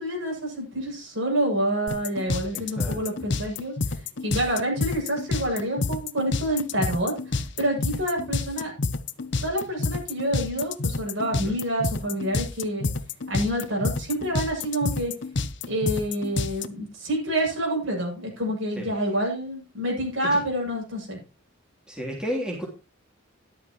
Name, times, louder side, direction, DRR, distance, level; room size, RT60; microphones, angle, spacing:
voice 1, 0.0-8.7 9.4-12.9 13.3-15.1 15.7-21.2, right 1 dB, 70° right, -1 dB, 7.6 m, -28 dB
sound 1, 1.9-16.7, left 3 dB, 55° left, 0.8 m, -28 dB
voice 2, 2.5-3.0 11.3-11.5 18.8-18.9 20.3-20.4 21.9-22.7, equal, 5° right, -2 dB, 3.1 m, -32 dB
13.5 x 11.0 x 3.0 m, 0.31 s
head